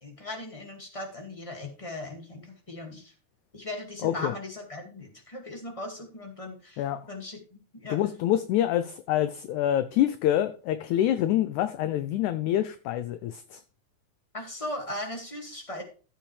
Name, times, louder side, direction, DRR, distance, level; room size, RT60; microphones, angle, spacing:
voice 1, 0.0-3.1 3.5-8.0 14.3-15.8, left 1 dB, 15° left, 1.5 m, -38 dB
voice 2, 4.0-4.3 6.8-7.0 7.9-13.6, left 12 dB, 80° left, 1.8 m, -26 dB
14.0 x 7.6 x 3.3 m
omnidirectional pair, 3.9 m